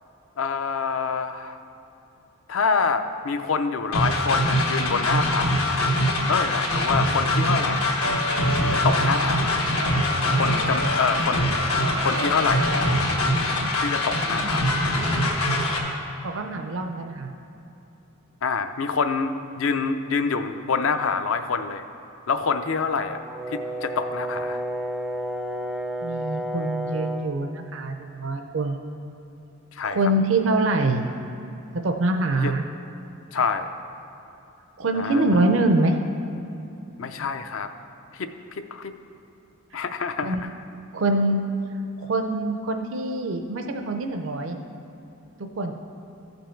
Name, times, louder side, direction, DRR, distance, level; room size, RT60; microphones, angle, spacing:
voice 1, 0.4-1.6 2.5-5.8 6.3-7.9 8.6-9.6 10.4-11.5 12.0-13.0 13.8-14.8 18.4-21.8 22.3-23.2 23.5-24.6 29.7-30.0 32.4-32.5 33.3-33.7 34.9-35.2 37.0-37.7 38.1-38.9 39.7-40.4, left 5 dB, 65° left, 9 dB, 0.5 m, -26 dB
sound 1, 3.9-15.8, left 1 dB, 85° left, 1.3 m, -23 dB
sound 2, 8.0-13.0, right 1 dB, 85° right, 1.0 m, -32 dB
voice 2, 16.2-17.3 26.0-28.8 29.8-31.1 31.8-32.6 34.8-35.9 39.7-39.8 40.2-40.5 40.9-41.4 42.0-44.6 45.4-45.7, right 2 dB, 60° right, 5 dB, 0.5 m, -24 dB
Brass instrument, 23.1-27.3, right 1 dB, ahead, 0.3 m, -31 dB
14.5 x 5.3 x 4.4 m, 2.8 s
head